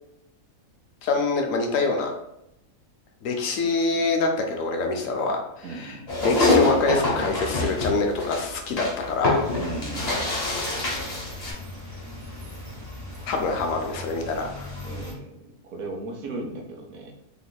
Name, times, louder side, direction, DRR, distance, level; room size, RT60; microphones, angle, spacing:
voice 1, 1.0-2.1 3.2-9.4 13.3-14.7, left 3 dB, 70° left, 3 dB, 0.9 m, -25 dB
voice 2, 5.6-6.1 9.5-10.3 13.5-13.6 14.8-15.4 15.7-17.1, right 3 dB, 80° right, 2 dB, 1.1 m, -36 dB
sound 1, 6.1-11.5, left 2 dB, 35° left, 0.8 m, -25 dB
sound 2, 9.4-15.1, left 1 dB, 10° right, 1.3 m, -39 dB
3.4 x 3.0 x 2.2 m, 0.83 s
omnidirectional pair, 1.5 m